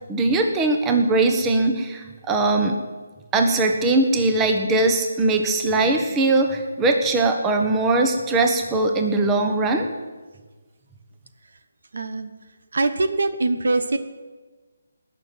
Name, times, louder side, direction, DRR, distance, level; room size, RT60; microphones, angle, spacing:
voice 1, 0.1-2.8 3.3-9.9, right 2 dB, 15° right, 4 dB, 1.2 m, -20 dB
voice 2, 11.9-12.3 12.7-14.0, right 2 dB, 70° right, 10 dB, 1.2 m, -23 dB
18.0 x 6.7 x 9.3 m, 1.3 s
hypercardioid pair, 160°, 0 cm